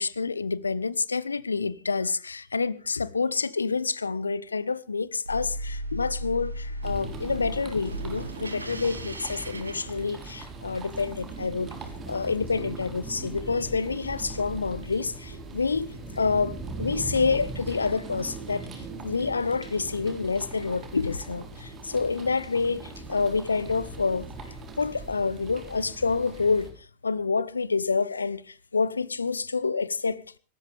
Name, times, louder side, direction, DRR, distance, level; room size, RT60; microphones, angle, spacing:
voice 1, 0.0-11.8 12.1-24.3 24.8-26.7 27.0-30.2, left 4 dB, 75° left, 0.7 m, -28 dB
sound 1, 5.2-10.5, right 1 dB, 80° right, 1.4 m, -36 dB
sound 2, 6.8-26.7, right 2 dB, 25° right, 3.7 m, -40 dB
26.0 x 13.0 x 3.5 m
figure-of-eight pair, 90°, 0 cm